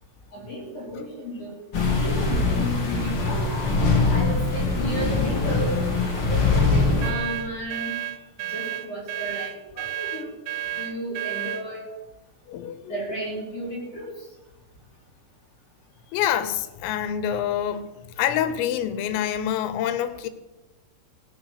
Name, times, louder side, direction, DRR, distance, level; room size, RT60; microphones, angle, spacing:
voice 1, 0.3-1.5 2.0-3.4 4.1-5.8 6.1-7.9 8.4-10.3 10.7-11.8 12.9-14.2, right 1 dB, 30° left, -5 dB, 4.3 m, -33 dB
sound 1, 1.7-7.1, left 3 dB, 55° left, 1.4 m, -22 dB
sound 2, 7.0-11.7, right 12 dB, 85° right, 3.5 m, -31 dB
voice 2, 12.5-12.9 16.1-17.9 18.2-20.3, left 10 dB, 90° left, 12 dB, 3.6 m, -26 dB
16.0 x 8.7 x 6.5 m, 1.0 s
omnidirectional pair, 5.9 m